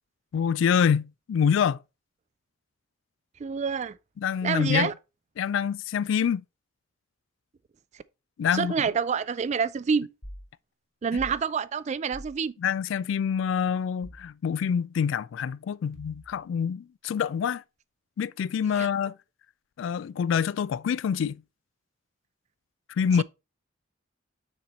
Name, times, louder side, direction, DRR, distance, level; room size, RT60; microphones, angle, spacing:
voice 1, 0.3-1.8 4.2-4.9 5.4-6.4 8.4-8.7 12.6-17.6 18.2-19.2 19.8-21.4 22.9-23.2, left 7 dB, 70° left, 0.3 m, -26 dB
voice 2, 3.4-4.0 4.4-4.9 8.5-10.1 11.0-12.5 18.8-18.9, right 6 dB, 35° right, 0.3 m, -27 dB
sound 1, 10.2-10.5 11.2-11.4 12.1-12.4 14.0-14.3 15.9-16.5, equal, 50° left, 1.7 m, -43 dB
6.5 x 4.3 x 4.2 m
head